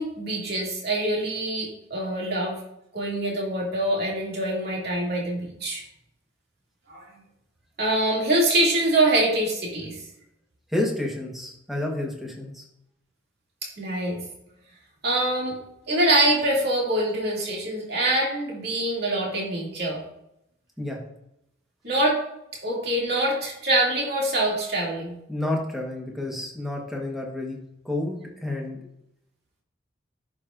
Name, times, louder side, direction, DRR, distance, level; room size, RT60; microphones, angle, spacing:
voice 1, 0.0-2.6 2.9-5.8 6.9-7.1 7.8-10.0 13.8-14.2 15.0-15.6 15.9-20.0 21.8-22.2 22.6-25.1, right 1 dB, 55° right, -3 dB, 2.4 m, -24 dB
voice 2, 10.7-12.6 20.8-21.0 25.3-27.6 27.8-28.8, left 1 dB, ahead, -1 dB, 1.2 m, -30 dB
11.5 x 4.9 x 2.5 m, 0.80 s
head